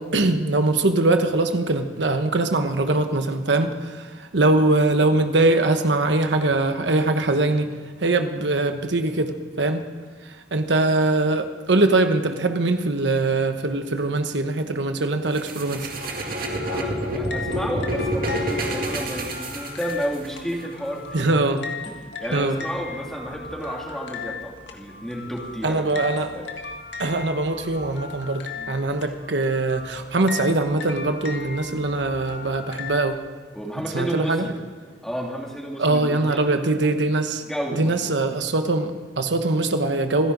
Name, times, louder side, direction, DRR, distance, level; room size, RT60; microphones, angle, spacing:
voice 1, 0.0-7.7 8.0-9.8 10.5-15.9 21.1-21.6 22.3-22.6 25.6-26.4 27.0-33.2 33.9-34.5 35.8-37.4 37.8-40.3, right 2 dB, 80° right, 7 dB, 1.1 m, -22 dB
sound 1, 15.3-20.3, right 1 dB, 55° right, 2.2 m, -28 dB
sound 2, 15.8-33.0, left 4 dB, 80° left, 1.8 m, -38 dB
voice 2, 16.7-21.3 21.8-21.9 22.2-26.5 28.6-28.7 33.5-34.6 35.0-36.6 37.4-38.0, equal, 5° left, -2 dB, 2.7 m, -31 dB
27.5 x 11.0 x 4.0 m, 1.5 s
head